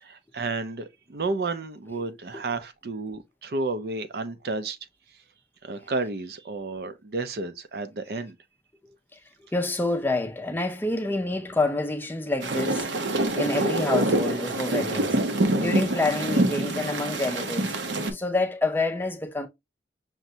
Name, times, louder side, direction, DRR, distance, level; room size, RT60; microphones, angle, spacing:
voice 1, 0.0-4.8 5.6-8.3, right 3 dB, 60° right, 0.5 m, -31 dB
voice 2, 9.5-15.2 15.6-17.8 18.1-19.5, left 2 dB, 10° left, 0.4 m, -28 dB
sound 1, 12.4-18.1, right 1 dB, 90° right, 0.7 m, -25 dB
6.0 x 2.1 x 2.7 m
head